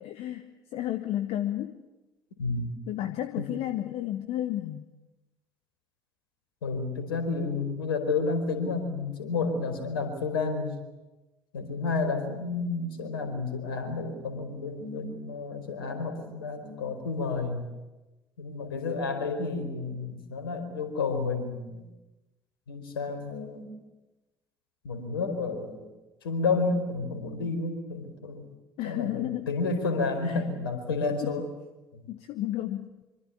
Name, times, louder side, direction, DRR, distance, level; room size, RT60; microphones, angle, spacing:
voice 1, 0.0-1.8 2.9-4.9 28.8-29.5 30.2-30.4 31.2-31.5 32.1-32.9, left 13 dB, 55° left, 9 dB, 1.4 m, -32 dB
voice 2, 6.6-10.7 11.5-17.6 18.4-21.8 22.7-23.7 24.8-25.8 26.2-28.4 28.8-31.4 31.9-32.1, left 4 dB, 75° left, 7 dB, 4.7 m, -31 dB
25.5 x 24.5 x 8.6 m, 1.1 s
figure-of-eight pair, 55°, 12 cm